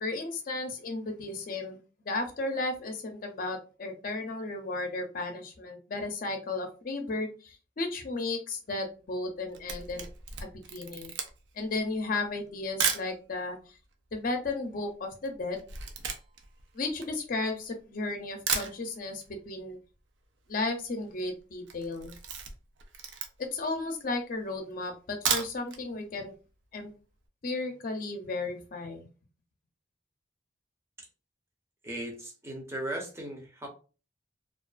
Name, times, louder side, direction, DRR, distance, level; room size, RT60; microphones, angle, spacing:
voice 1, 0.0-1.8 2.0-10.1 10.4-11.1 11.6-13.6 14.1-15.6 16.7-19.8 20.5-22.1 23.4-26.3 26.7-26.9 27.4-29.1, left 3 dB, 50° left, 4 dB, 0.5 m, -34 dB
Camera, 9.3-13.1 13.8-13.9 14.1-17.8 18.2-18.3 18.5-19.3 19.6-19.7 20.0-20.1 20.2-20.7 21.0-21.2 21.6-23.6 24.1-24.2 25.0-25.8 26.2-26.3 26.6-26.7, right 6 dB, 75° right, 0.5 m, -34 dB
voice 2, 31.8-33.7, right 1 dB, 15° right, 1 dB, 0.6 m, -37 dB
2.3 x 2.3 x 2.4 m, 0.35 s
head